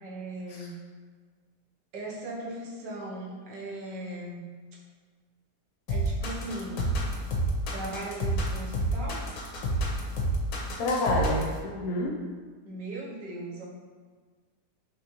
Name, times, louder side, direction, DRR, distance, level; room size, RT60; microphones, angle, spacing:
voice 1, 0.0-0.8 1.9-4.4 5.9-6.9 7.7-9.3 12.6-13.7, right 1 dB, 85° right, -4 dB, 1.6 m, -38 dB
sound 1, 5.9-11.6, right 1 dB, 85° left, 1.4 m, -29 dB
voice 2, 10.8-12.2, left 1 dB, 65° left, -2 dB, 1.0 m, -28 dB
5.1 x 3.2 x 2.9 m, 1.5 s
omnidirectional pair, 1.8 m